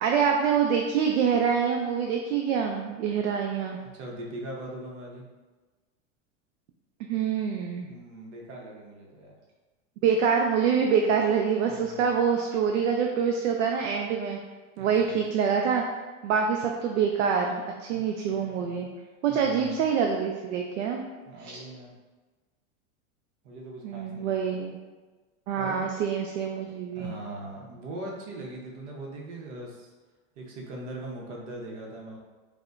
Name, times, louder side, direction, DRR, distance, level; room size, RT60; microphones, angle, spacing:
voice 1, 0.0-3.8 7.0-7.9 10.0-14.4 14.8-15.8 16.2-18.9 19.2-21.0 21.4-21.5 23.8-24.8 25.5-27.1, right 6 dB, 90° right, 2 dB, 0.5 m, -26 dB
voice 2, 3.8-5.3 7.9-9.4 11.7-12.1 14.8-15.2 17.9-18.0 18.3-18.9 19.3-19.8 21.3-21.9 23.4-24.5 25.6-25.9 26.9-29.9 30.4-32.2, right 1 dB, 75° right, -1 dB, 1.0 m, -41 dB
4.8 x 2.2 x 2.5 m, 1.3 s
supercardioid pair, 125°, 36 cm